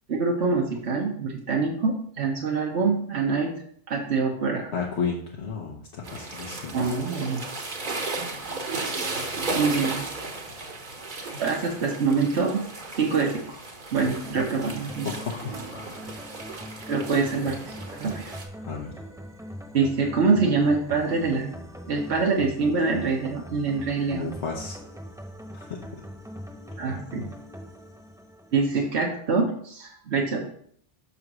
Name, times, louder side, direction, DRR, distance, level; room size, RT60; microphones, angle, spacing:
voice 1, 0.1-3.5 3.9-4.7 6.7-7.5 9.6-10.1 11.4-12.6 12.9-13.6 13.9-15.1 16.9-18.3 19.7-21.6 21.9-24.3 26.8-27.3 28.5-30.4, right 4 dB, 70° right, -1 dB, 1.3 m, -25 dB
voice 2, 4.7-7.0 15.0-16.0 18.6-18.9 24.1-24.8 25.5-25.8 26.8-26.9, left 5 dB, 70° left, 0 dB, 1.2 m, -33 dB
sound 1, 6.0-18.4, right 3 dB, 45° right, 1.2 m, -35 dB
sound 2, 14.0-29.1, equal, 5° right, 1.0 m, -42 dB
6.4 x 4.0 x 6.0 m, 0.62 s
omnidirectional pair, 1.2 m